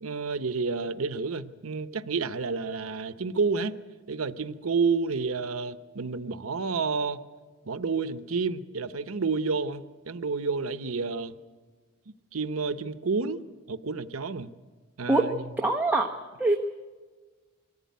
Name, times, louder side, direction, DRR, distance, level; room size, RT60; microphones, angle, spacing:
voice 1, 0.0-3.8 4.1-7.2 7.6-11.3 12.1-14.5 15.0-15.4, right 4 dB, 85° right, 12 dB, 0.8 m, -30 dB
voice 2, 15.6-16.1 16.4-16.6, right 2 dB, 10° right, 1 dB, 1.0 m, -23 dB
23.0 x 14.5 x 9.5 m, 1.4 s
head